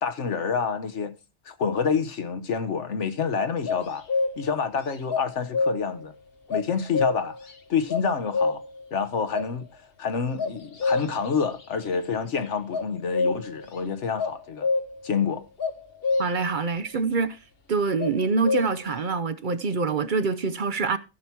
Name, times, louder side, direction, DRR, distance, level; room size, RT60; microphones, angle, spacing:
voice 1, 0.0-1.1 1.4-4.1 4.4-6.1 6.5-7.4 7.7-8.6 8.9-9.7 10.0-14.7 15.0-15.4, left 6 dB, 85° left, 1.4 m, -28 dB
sound 1, 3.7-4.6 5.1-6.0 6.5-7.5 7.9-8.8 9.3-9.5 10.4-11.4 12.7-13.6 14.2-15.1 15.6-16.5 18.0-18.9, left 4 dB, 55° left, 1.4 m, -27 dB
voice 2, 16.2-17.4 17.7-21.0, right 4 dB, 50° right, 0.8 m, -25 dB
14.0 x 5.9 x 4.6 m
omnidirectional pair, 1.2 m